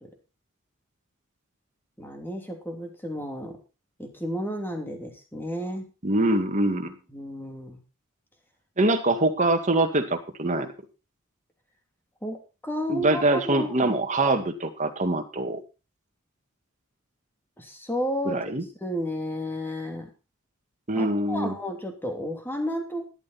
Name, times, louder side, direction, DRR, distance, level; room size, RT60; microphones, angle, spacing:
voice 1, 2.0-3.6 4.0-5.9 7.1-7.8 12.2-14.0 17.6-18.4 18.8-20.1 21.0-23.1, equal, 10° left, 3 dB, 2.9 m, -32 dB
voice 2, 6.0-7.0 8.8-10.7 12.9-15.6 18.2-18.6 20.9-21.6, right 2 dB, 35° right, 6 dB, 2.0 m, -24 dB
14.0 x 11.5 x 4.1 m, 0.32 s
head